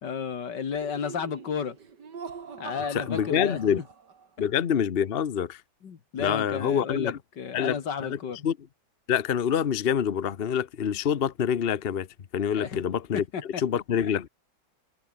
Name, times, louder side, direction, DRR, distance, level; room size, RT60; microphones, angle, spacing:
voice 1, 0.0-1.8 2.6-3.6 4.4-4.5 5.8-8.4 12.6-12.8 13.1-13.6 14.0-14.1, left 6 dB, 75° left, 2.5 m, -33 dB
Laughter, 0.7-4.4, right 6 dB, 70° right, 2.8 m, -43 dB
voice 2, 2.9-3.8 4.4-5.6 6.2-7.2 7.5-8.6 9.1-12.1 12.3-14.3, left 8 dB, 45° left, 0.8 m, -26 dB
omnidirectional pair, 1.9 m